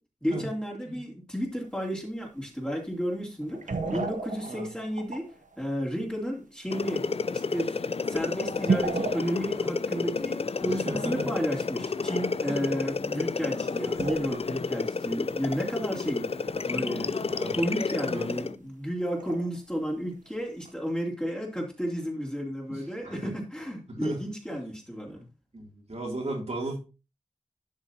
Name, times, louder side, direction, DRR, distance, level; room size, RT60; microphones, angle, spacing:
voice 1, 0.2-7.0 7.3-7.8 8.1-16.3 16.6-17.1 17.5-25.3, equal, 5° left, -3 dB, 3.0 m, -32 dB
sound 1, 1.6-1.7 3.4-5.7 6.4-6.5 6.9-7.0 7.8-7.9 8.5-9.7 10.0-10.1 11.5-11.6 13.2-13.4 13.8-14.6 14.9-15.0 15.3-15.4 15.7-17.7 18.1-18.4 19.2-19.6 20.3-20.4 20.6-20.7, right 4 dB, 75° right, 1.0 m, -34 dB
sound 2, 6.7-18.6, left 4 dB, 50° left, 0.4 m, -30 dB
voice 2, 10.6-11.3 12.5-12.8 17.2-17.6 18.0-18.3 22.7-23.3 24.0-24.2 25.5-26.8, right 1 dB, 55° right, -1 dB, 2.9 m, -36 dB
11.5 x 6.4 x 2.9 m, 0.31 s
wide cardioid pair, 80°, 13 cm